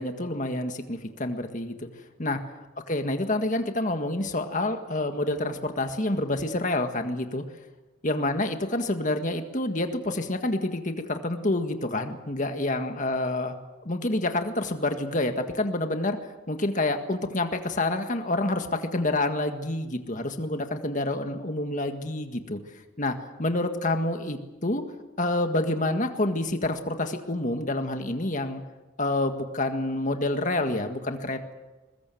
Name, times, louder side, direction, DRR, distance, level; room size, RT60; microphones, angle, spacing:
voice 1, 0.0-1.9 2.2-2.4 2.9-7.4 8.0-13.6 13.8-16.2 16.5-22.6 23.0-24.8 25.2-28.6 29.0-31.5, left 2 dB, 35° left, 6 dB, 1.8 m, -28 dB
21.5 x 21.5 x 7.8 m, 1.2 s
head